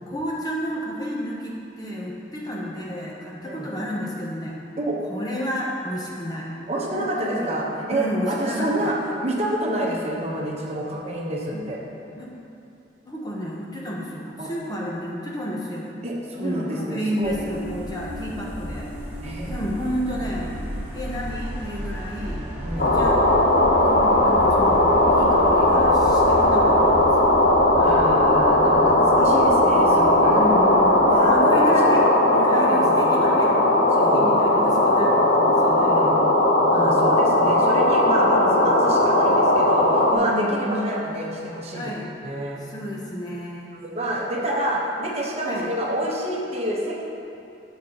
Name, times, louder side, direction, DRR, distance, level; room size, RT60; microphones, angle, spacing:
voice 1, 0.1-4.6 5.1-6.5 6.9-7.5 7.9-9.0 11.5-11.6 12.2-12.3 13.1-15.9 16.4-18.9 19.5-20.5 20.9-22.4 22.7-23.2 23.8-27.3 27.9-28.7 29.8-32.0 32.4-33.5 33.9-36.2 36.7-37.3 38.3-38.9 40.1-41.0 41.7-42.1 42.6-43.7 45.5-45.7, equal, 20° left, -3 dB, 0.8 m, -31 dB
voice 2, 6.7-11.8 14.4-14.5 16.0-17.4 19.2-19.6 22.6-22.9 26.3-26.6 27.7-30.4 31.0-33.0 34.0-34.3 35.7-36.2 36.7-41.9 42.2-42.6 43.7-47.0, right 1 dB, 35° right, -3 dB, 1.0 m, -28 dB
sound 1, 17.2-31.3, equal, 10° right, 1.7 m, -33 dB
sound 2, 22.8-40.2, left 1 dB, 60° left, 0.8 m, -18 dB
11.0 x 6.5 x 2.9 m, 2.8 s
head